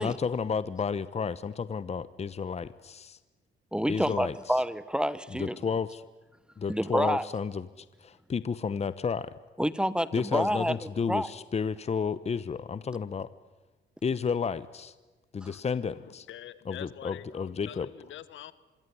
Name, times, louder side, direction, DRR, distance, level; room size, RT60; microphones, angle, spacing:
voice 1, 0.0-3.2 3.9-4.4 5.3-6.0 6.6-9.4 10.1-13.3 14.0-14.9 15.3-16.3 16.7-17.9, left 6 dB, 35° left, 16 dB, 1.0 m, -32 dB
voice 2, 3.7-5.6 6.7-7.3 9.6-10.8 11.1-11.3, equal, 5° right, 17 dB, 1.2 m, -28 dB
voice 3, 15.9-18.5, left 11 dB, 75° left, 16 dB, 1.4 m, -45 dB
25.5 x 23.0 x 9.9 m, 1.2 s
cardioid pair, 90°, 20 cm